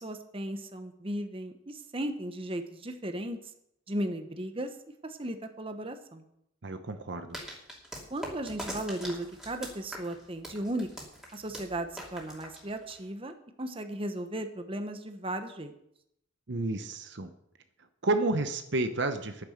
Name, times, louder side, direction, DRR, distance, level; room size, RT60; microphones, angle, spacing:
voice 1, 0.0-3.4 3.9-4.7 5.0-6.3 8.1-15.7, right 1 dB, 25° right, 7 dB, 1.0 m, -36 dB
voice 2, 6.6-7.4 16.5-17.3 18.0-19.4, right 2 dB, 60° right, 8 dB, 0.8 m, -30 dB
sound 1, 7.3-13.1, equal, 5° right, 2.7 m, -42 dB
10.5 x 9.7 x 6.5 m, 0.76 s
head